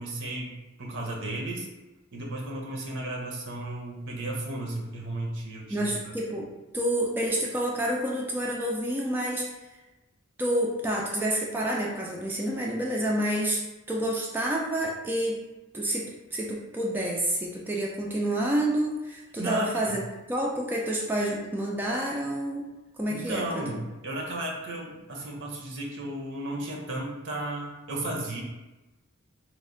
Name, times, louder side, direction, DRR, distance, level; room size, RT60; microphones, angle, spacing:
voice 1, 0.0-1.7 2.1-5.9 19.4-19.9 23.1-28.4, right 1 dB, 60° right, -1 dB, 0.7 m, -34 dB
voice 2, 5.7-6.5 6.7-9.5 10.4-13.6 13.9-15.4 15.7-20.0 20.3-22.6 23.0-23.5, right 1 dB, 10° right, -2 dB, 0.3 m, -28 dB
3.1 x 2.1 x 3.7 m, 1.1 s
head